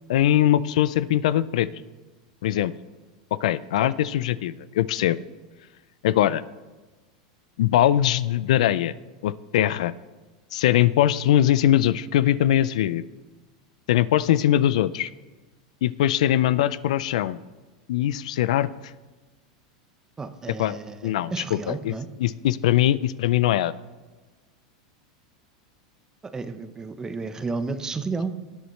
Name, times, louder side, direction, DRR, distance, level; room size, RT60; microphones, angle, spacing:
voice 1, 0.1-1.7 2.4-2.7 3.4-5.2 6.0-6.4 7.6-8.9 9.2-9.9 10.5-13.0 13.9-15.1 15.8-17.4 17.9-18.7 20.6-20.8 21.0-21.9 22.2-23.7, left 12 dB, 75° left, 17 dB, 0.4 m, -21 dB
voice 2, 20.2-22.1 26.2-28.3, right 4 dB, 15° right, 10 dB, 0.9 m, -32 dB
19.0 x 8.0 x 3.2 m, 1.3 s
supercardioid pair, 120°, 4 cm